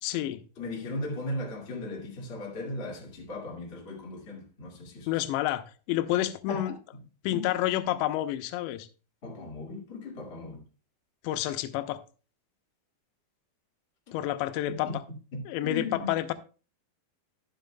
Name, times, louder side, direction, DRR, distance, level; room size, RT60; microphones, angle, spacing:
voice 1, 0.0-0.4 5.1-6.8 7.2-8.9 11.2-12.0 14.1-14.9 15.5-16.3, left 14 dB, 85° left, 2.9 m, -29 dB
voice 2, 0.6-5.2 6.5-7.0 7.3-7.4 9.2-10.6 14.1-14.2 14.7-15.0 15.3-16.1, left 2 dB, 60° left, 0.6 m, -37 dB
13.0 x 7.6 x 2.2 m
omnidirectional pair, 5.1 m